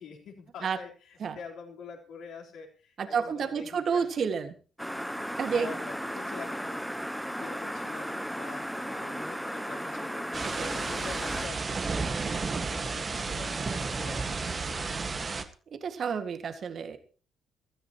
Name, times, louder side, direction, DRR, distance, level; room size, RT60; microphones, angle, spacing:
voice 1, 0.0-4.3 5.4-15.1, left 5 dB, 70° left, 0 dB, 4.0 m, -46 dB
voice 2, 3.0-4.5 5.4-5.7 10.4-10.7 15.7-17.0, right 6 dB, 55° right, 9 dB, 1.9 m, -30 dB
sound 1, 4.8-11.5, equal, ahead, 1.0 m, -35 dB
sound 2, 10.3-15.4, right 4 dB, 40° right, 1.7 m, -32 dB
21.5 x 14.0 x 3.0 m, 0.37 s
hypercardioid pair, 45°, 0 cm